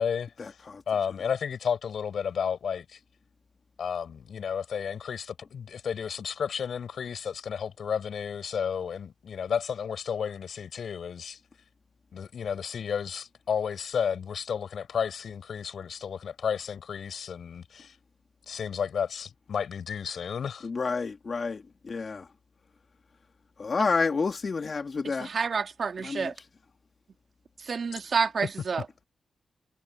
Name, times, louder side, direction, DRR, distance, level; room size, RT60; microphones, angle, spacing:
voice 1, 0.0-0.6 0.9-3.0 3.8-11.4 12.1-17.9 18.5-20.7, left 7 dB, 75° left, 6.6 m, -32 dB
voice 2, 20.6-21.6 21.9-22.2 23.6-25.3 26.0-26.3, left 4 dB, 50° left, 2.4 m, -29 dB
voice 3, 25.0-26.3 27.7-28.8, right 5 dB, 60° right, 2.2 m, -29 dB
cardioid pair, 80°, 0 cm